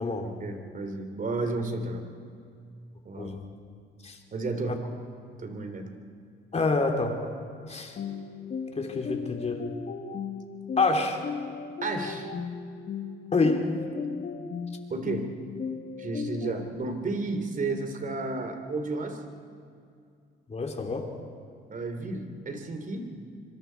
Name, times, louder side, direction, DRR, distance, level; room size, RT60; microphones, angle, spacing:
voice 1, 0.2-2.0 3.0-3.3 4.3-4.8 5.4-5.9 11.8-12.3 14.9-15.3 16.0-19.2 21.7-23.1, right 3 dB, 45° right, 6 dB, 3.1 m, -32 dB
voice 2, 6.5-7.2 7.7-8.0 8.8-9.6 10.8-11.2 13.3-13.8 20.5-21.1, left 3 dB, 35° left, 2 dB, 3.2 m, -27 dB
sound 1, 8.0-16.7, left 6 dB, 50° left, 1.5 m, -36 dB
26.0 x 23.5 x 4.7 m, 2.3 s
cardioid pair, 90°, 20 cm